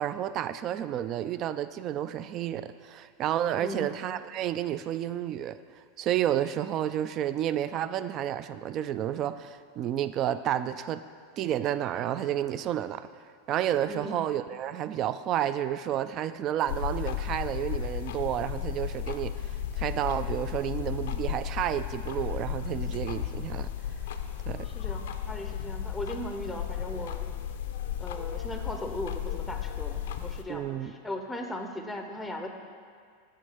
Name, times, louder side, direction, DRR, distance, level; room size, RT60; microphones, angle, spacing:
voice 1, 0.0-5.6 6.0-11.0 11.4-13.1 13.5-19.4 19.8-23.7 24.5-24.7 30.5-30.9, right 11 dB, 40° right, 13 dB, 0.3 m, -30 dB
voice 2, 13.9-14.2 24.6-27.3 28.0-32.5, left 1 dB, 5° left, 4 dB, 0.6 m, -38 dB
sound 1, 16.7-30.4, left 10 dB, 80° left, 0.5 m, -34 dB
6.4 x 4.6 x 6.5 m, 2.1 s
supercardioid pair, 125°, 0 cm